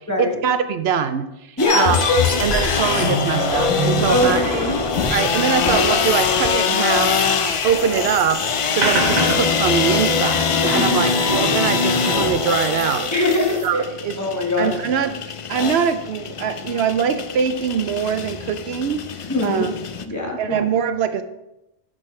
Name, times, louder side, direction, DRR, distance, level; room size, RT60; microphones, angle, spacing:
voice 1, 0.2-2.0 2.4-4.6 5.1-7.2 7.6-8.4 8.7-13.1 13.6-14.2 14.6-15.2 15.5-19.0 19.4-19.7 20.4-21.2, right 7 dB, 85° right, 10 dB, 0.9 m, -23 dB
sound 1, 1.6-12.3, left 2 dB, 90° left, 1.5 m, -23 dB
sound 2, 1.6-20.0, left 7 dB, 55° left, 0.3 m, -24 dB
voice 2, 1.6-2.0 4.1-4.8 10.7-10.8 13.1-13.6 14.2-14.8 19.3-19.6 20.0-20.4, left 1 dB, 15° left, -1 dB, 1.3 m, -21 dB
sound 3, 4.9-13.7, right 2 dB, 45° right, 1.2 m, -31 dB
8.7 x 6.5 x 3.2 m, 0.89 s
omnidirectional pair, 1.0 m